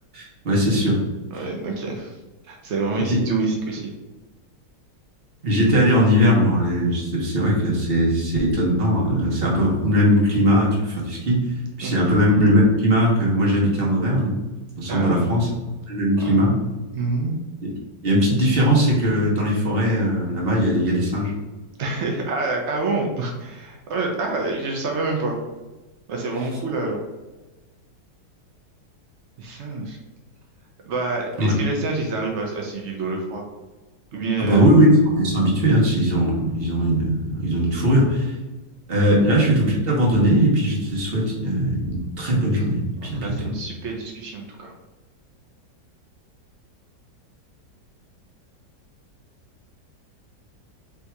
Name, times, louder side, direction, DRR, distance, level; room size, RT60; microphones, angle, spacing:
voice 1, 0.1-1.0 3.0-3.2 5.4-11.4 11.8-14.3 14.8-15.5 15.9-16.5 18.0-21.3 31.4-31.5 34.4-34.9 35.1-38.4 38.9-43.4, equal, 35° right, -4 dB, 1.2 m, -19 dB
voice 2, 1.3-2.2 2.4-3.9 11.8-12.1 14.9-15.3 16.2-16.4 16.9-17.4 18.2-18.4 21.8-25.4 26.1-27.0 29.4-30.0 30.9-33.4 34.1-34.7 39.1-39.3 43.0-44.7, right 3 dB, 75° right, 0 dB, 0.6 m, -27 dB
3.4 x 2.7 x 4.5 m, 1.2 s
omnidirectional pair, 1.9 m